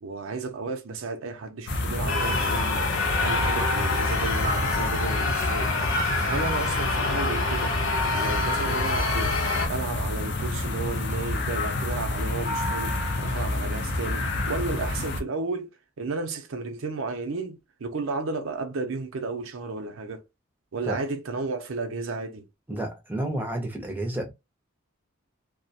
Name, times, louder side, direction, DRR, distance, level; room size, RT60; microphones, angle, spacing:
voice 1, 0.0-2.8 3.2-5.7 6.2-7.7 8.1-15.7 16.0-20.2 20.7-22.4, right 3 dB, 85° right, 0.5 m, -33 dB
sound 1, 1.7-15.2, left 2 dB, 55° left, 0.5 m, -28 dB
sound 2, 2.1-9.7, left 3 dB, 90° left, 0.8 m, -27 dB
voice 2, 22.7-24.3, right 1 dB, 10° right, 0.5 m, -30 dB
2.3 x 2.1 x 2.6 m
head